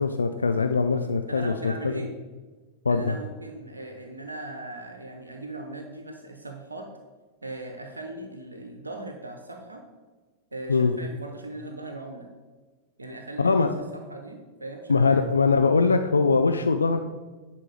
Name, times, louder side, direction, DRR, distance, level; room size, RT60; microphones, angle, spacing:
voice 1, 0.0-2.0 2.9-3.1 10.7-10.9 13.4-13.7 14.9-17.0, left 4 dB, 75° left, 7 dB, 0.4 m, -22 dB
voice 2, 1.3-2.1 2.9-6.9 7.4-9.8 10.5-12.3 13.0-15.2, right 2 dB, 80° right, 4 dB, 0.9 m, -39 dB
10.0 x 4.5 x 6.4 m, 1.3 s
figure-of-eight pair, 90°, 0 cm